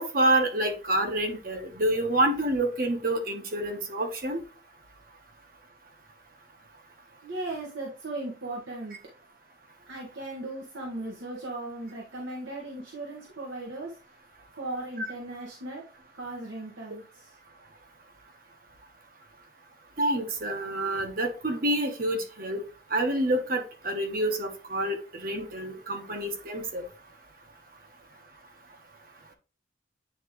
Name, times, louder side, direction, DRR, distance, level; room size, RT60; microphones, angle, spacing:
voice 1, 0.0-4.4 15.0-15.1 20.0-22.6 22.9-25.0 25.2-26.8, right 1 dB, 50° right, 5 dB, 1.3 m, -27 dB
voice 2, 7.2-9.0 9.9-13.9 14.6-15.8 16.1-17.3, right 2 dB, 80° right, -3 dB, 1.5 m, -37 dB
9.0 x 3.6 x 3.2 m, 0.35 s
head